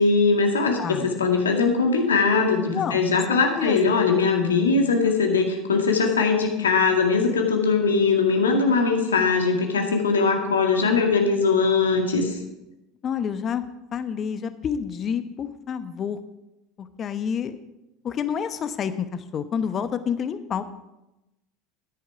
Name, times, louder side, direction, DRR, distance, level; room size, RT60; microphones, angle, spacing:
voice 1, 0.0-12.4, left 4 dB, 80° left, 3 dB, 1.8 m, -21 dB
voice 2, 0.8-1.3 2.7-3.2 3.5-3.8 13.0-13.6 13.9-16.2 16.8-17.6 18.0-20.6, left 7 dB, 35° left, 12 dB, 0.9 m, -29 dB
12.5 x 10.5 x 4.8 m, 0.96 s
figure-of-eight pair, 75°, 0 cm